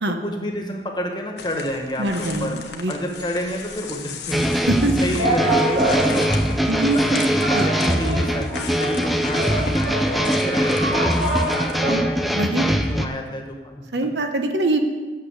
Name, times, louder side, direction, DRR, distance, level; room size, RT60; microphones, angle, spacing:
voice 1, 0.1-2.6 2.9-4.6 4.8-7.2 7.5-12.2 12.5-13.8, equal, 25° left, 2 dB, 1.3 m, -30 dB
sound 1, 1.4-11.8, left 5 dB, 80° left, 1.2 m, -37 dB
voice 2, 2.0-2.9 4.5-4.9 6.7-7.2 7.5-7.7 11.9-12.0 12.3-12.7 13.9-14.8, right 2 dB, 80° right, 6 dB, 1.1 m, -23 dB
sound 2, 4.3-13.1, equal, ahead, 0.4 m, -22 dB
sound 3, 5.2-11.9, right 2 dB, 65° right, 4.2 m, -26 dB
8.6 x 6.8 x 8.1 m, 1.4 s
head